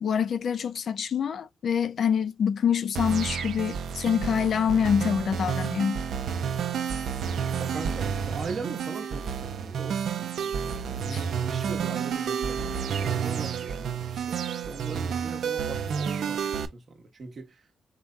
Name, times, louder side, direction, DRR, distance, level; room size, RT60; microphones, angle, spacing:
voice 1, 0.0-6.0 11.1-11.2, left 7 dB, 60° left, 0.4 m, -26 dB
sound 1, 3.0-16.7, right 7 dB, 75° right, 0.5 m, -30 dB
voice 2, 7.6-16.8 17.2-17.5, right 4 dB, 45° right, 1.0 m, -39 dB
4.7 x 2.2 x 3.6 m
wide cardioid pair, 170°, 0 cm